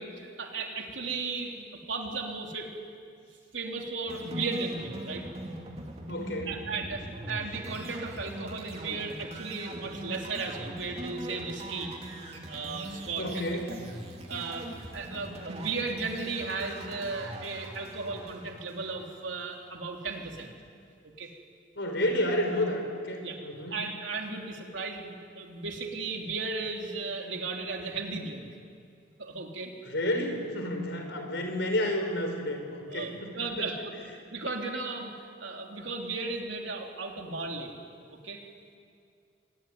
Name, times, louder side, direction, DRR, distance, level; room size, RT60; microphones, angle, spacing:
voice 1, 0.2-2.7 3.5-5.2 6.5-11.9 12.5-13.5 14.3-14.7 14.9-20.5 21.2-21.3 23.2-23.4 23.7-28.5 29.2-29.7 32.9-33.9 34.3-35.1 35.4-37.7 38.2-38.4, right 4 dB, 80° right, 1 dB, 3.5 m, -35 dB
sound 1, 4.1-19.4, right 1 dB, 35° right, 2.9 m, -41 dB
voice 2, 6.1-6.6 13.2-13.7 21.7-23.8 29.8-33.7, left 1 dB, 65° left, 4 dB, 4.7 m, -31 dB
24.0 x 20.5 x 9.8 m, 2.4 s
head